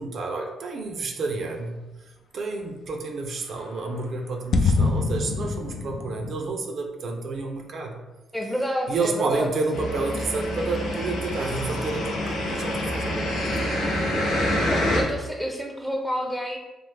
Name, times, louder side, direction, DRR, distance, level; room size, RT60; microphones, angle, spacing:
voice 1, 0.0-1.8 2.3-8.0 8.9-13.4, right 3 dB, 60° right, 3 dB, 0.4 m, -30 dB
sound 1, 3.5-3.6 3.8-3.9 4.5-6.3, left 3 dB, 60° left, 0.3 m, -24 dB
voice 2, 8.3-9.5 14.5-16.6, equal, 5° left, 1 dB, 0.5 m, -29 dB
sound 2, 9.7-15.0, left 1 dB, 85° left, 0.7 m, -26 dB
3.1 x 2.0 x 3.3 m, 1.1 s
cardioid pair, 90°, 0 cm